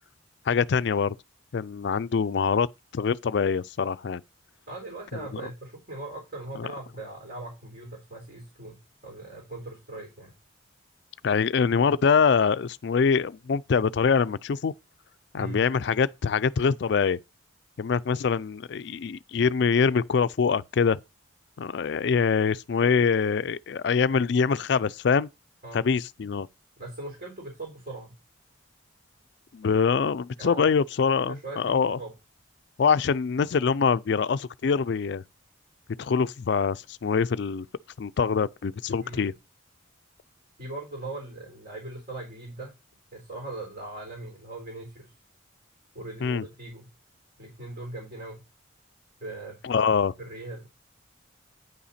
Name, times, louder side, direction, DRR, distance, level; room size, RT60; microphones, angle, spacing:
voice 1, 0.5-1.2 1.5-2.7 2.9-4.2 5.3-5.4 6.5-6.7 11.2-14.7 15.3-17.2 17.8-21.0 21.6-25.3 25.7-26.5 29.5-32.0 32.8-35.2 36.0-37.7 38.0-39.3 46.2-46.4 49.6-50.1, left 5 dB, 55° left, 0.4 m, -24 dB
voice 2, 4.7-8.8 9.0-10.3 15.4-15.6 25.6-25.8 26.8-28.1 30.4-30.7 31.2-32.1 39.0-39.3 40.6-42.7 43.1-45.1 45.9-46.9 47.4-48.4 49.2-49.6 50.2-50.7, right 2 dB, 50° right, 3.8 m, -40 dB
9.4 x 5.7 x 4.2 m
head